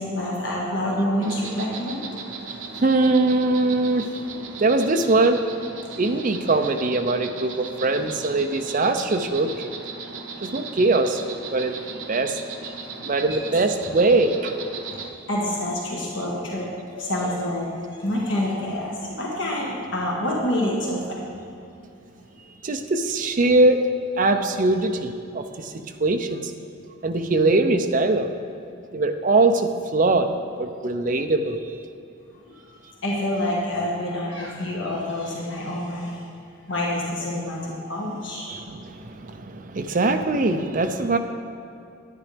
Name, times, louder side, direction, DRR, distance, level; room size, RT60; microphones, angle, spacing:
voice 1, 0.0-2.1 13.3-13.4 14.5-14.9 15.3-21.3 32.5-36.2 36.7-38.5, left 1 dB, 65° left, -4 dB, 1.5 m, -27 dB
Insect, 1.2-15.1, right 4 dB, 75° right, 0.8 m, -37 dB
voice 2, 2.8-4.0 4.6-5.4 6.0-9.7 10.4-11.2 11.5-11.7 12.1-12.4 13.0-14.5 22.6-23.8 24.2-26.5 27.0-28.3 28.9-30.3 30.6-31.6 38.5-41.2, right 2 dB, 40° right, 6 dB, 0.5 m, -21 dB
10.0 x 10.0 x 3.4 m, 2.7 s
head